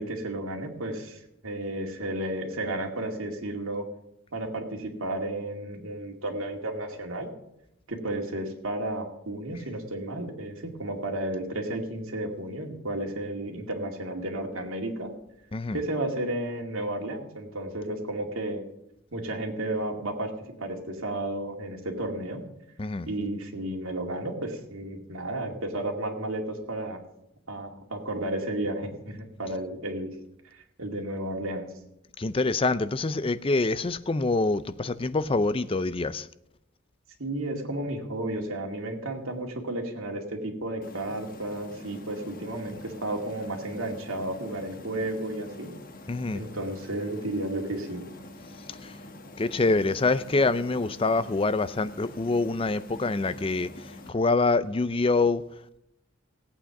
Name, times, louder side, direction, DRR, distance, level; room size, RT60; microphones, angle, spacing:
voice 1, 0.0-3.9 4.3-7.3 7.9-15.1 15.7-18.7 19.1-20.3 20.6-22.4 23.1-27.0 27.5-30.1 30.5-31.7 37.2-45.7 46.3-48.1, right 1 dB, 85° right, 2.4 m, -33 dB
voice 2, 32.2-36.3 46.1-46.4 48.8-49.0 49.4-55.4, left 3 dB, 25° left, 0.5 m, -26 dB
sound 1, 40.8-54.1, left 1 dB, 40° left, 1.3 m, -45 dB
16.5 x 8.7 x 5.9 m
head